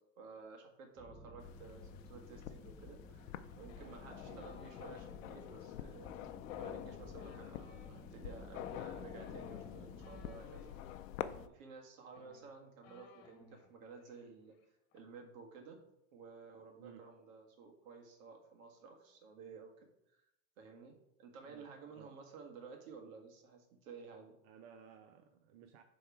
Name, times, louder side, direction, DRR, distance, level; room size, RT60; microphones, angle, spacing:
voice 1, 0.0-6.1 6.5-10.6 11.2-14.6 14.9-15.8 16.1-20.3 20.6-24.3, right 5 dB, 80° right, 2 dB, 1.7 m, -54 dB
sound 1, 1.0-10.4, left 1 dB, ahead, 0.5 m, -55 dB
sound 2, 1.4-11.5, left 11 dB, 85° left, 0.6 m, -47 dB
sound 3, 3.7-5.2 6.4-10.8 11.7-11.8 12.0-13.7 14.0-14.2 14.5-15.0, left 4 dB, 40° left, 1.3 m, -60 dB
voice 2, 21.4-22.1 24.4-25.8, right 7 dB, 55° right, 6 dB, 0.7 m, -57 dB
6.7 x 3.6 x 4.6 m, 0.84 s
supercardioid pair, 145°, 39 cm